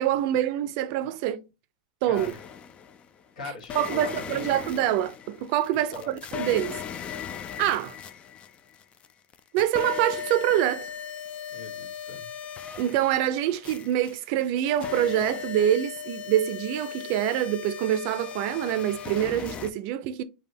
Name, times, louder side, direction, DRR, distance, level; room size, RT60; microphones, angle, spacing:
voice 1, 0.0-1.4 2.0-2.3 3.7-6.8 7.6-8.0 9.5-10.9 12.8-20.2, right 11 dB, 55° right, 0.6 m, -25 dB
voice 2, 2.0-2.4 3.3-4.6 5.9-6.1 11.5-12.3, left 4 dB, 75° left, 1.8 m, -40 dB
sound 1, 2.2-3.1 3.6-9.1 9.3-19.7, left 8 dB, 30° left, 0.5 m, -38 dB
5.4 x 2.3 x 2.8 m
hypercardioid pair, 110°, 4 cm